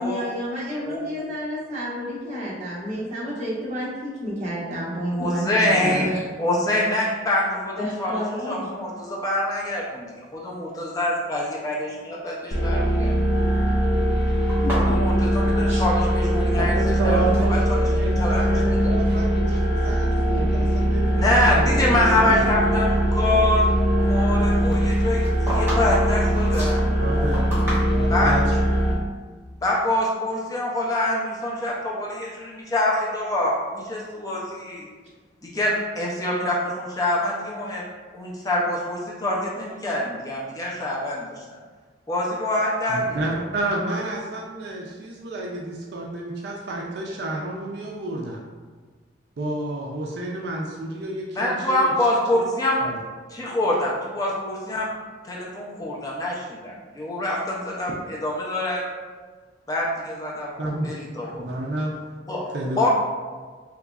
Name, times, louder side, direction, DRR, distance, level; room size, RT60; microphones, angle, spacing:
voice 1, 0.0-6.1 7.8-8.7 14.6-14.9 15.7-15.8, equal, 40° right, -7 dB, 0.9 m, -30 dB
voice 2, 5.1-10.1 10.3-12.3 12.6-13.1 14.7-16.8 17.0-17.2 17.5-18.9 21.1-23.7 24.0-26.8 28.1-28.3 29.6-34.9 35.4-37.8 38.1-41.4 42.1-43.2 51.4-52.8 53.3-54.9 55.2-57.9 58.2-58.8 59.7-61.4 62.3-62.5 62.8-62.9, left 1 dB, 20° left, -4 dB, 0.4 m, -25 dB
sound 1, 12.5-28.9, equal, 55° left, 0.7 m, -21 dB
sound 2, 14.5-16.5 16.7-17.5 18.1-18.7 19.0-19.3 19.9-20.0 20.6-22.1 22.4-22.5 24.8-28.3, equal, 10° right, 1.0 m, -33 dB
voice 3, 16.6-17.6 17.8-22.4 27.0-27.4 27.9-28.6 42.9-48.4 49.4-51.9 52.8-53.0 60.6-60.9 61.3-62.0 62.5-62.9, right 2 dB, 60° right, -2 dB, 0.4 m, -30 dB
3.6 x 2.9 x 2.3 m, 1.4 s
head